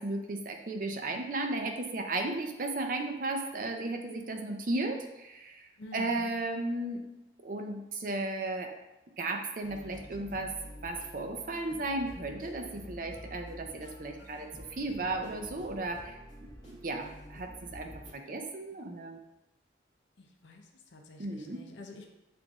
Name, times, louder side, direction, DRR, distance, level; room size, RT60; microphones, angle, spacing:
voice 1, 0.0-7.0 7.4-8.7 9.2-10.5 10.8-16.2 16.6-19.2 21.2-21.6, right 2 dB, 45° right, 4 dB, 0.5 m, -35 dB
voice 2, 5.8-6.3 20.2-22.1, left 2 dB, 80° left, 2 dB, 0.6 m, -48 dB
sound 1, 9.6-18.1, equal, 25° left, 1.3 m, -49 dB
7.7 x 2.6 x 2.4 m, 0.96 s
head